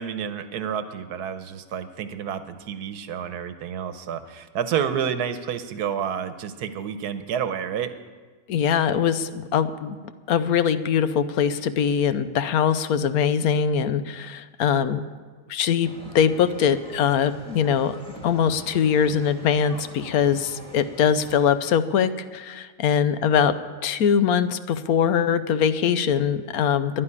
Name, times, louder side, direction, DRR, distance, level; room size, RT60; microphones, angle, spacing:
voice 1, 0.0-7.9, right 8 dB, 85° right, 10 dB, 1.4 m, -29 dB
voice 2, 8.5-10.0 10.3-15.0 15.5-17.9 18.2-23.5 23.8-27.0, left 7 dB, 70° left, 12 dB, 1.2 m, -22 dB
sound 1, 15.8-21.5, right 1 dB, 5° left, 1.9 m, -44 dB
11.0 x 9.8 x 9.8 m, 1.4 s
omnidirectional pair, 1.6 m